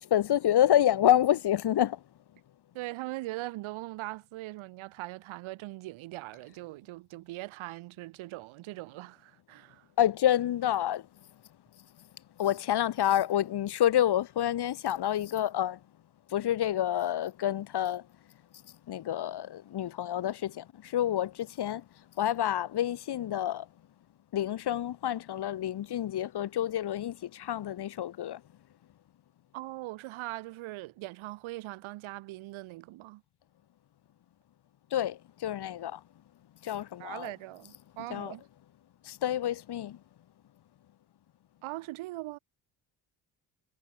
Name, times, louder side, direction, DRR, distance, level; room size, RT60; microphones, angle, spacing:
voice 1, 0.0-2.0 10.0-11.1 12.4-15.8 16.3-18.1 18.9-21.8 22.2-23.7 24.3-28.4 34.9-36.0 36.6-37.3 38.1-38.4 39.0-40.0, left 11 dB, 55° left, 1.5 m, -28 dB
voice 2, 2.7-9.8 29.5-33.2 37.0-38.4 41.6-42.4, right 18 dB, 85° right, 4.9 m, -41 dB
supercardioid pair, 75°, 47 cm